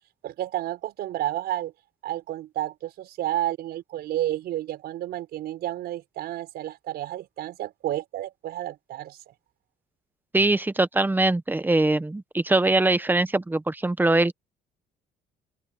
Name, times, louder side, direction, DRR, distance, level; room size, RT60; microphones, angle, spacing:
voice 1, 0.2-1.7 2.0-9.3, right 13 dB, 70° right, 5.4 m, -31 dB
voice 2, 10.3-14.3, right 2 dB, 10° right, 1.1 m, -22 dB
open air
cardioid pair, 110°, 17 cm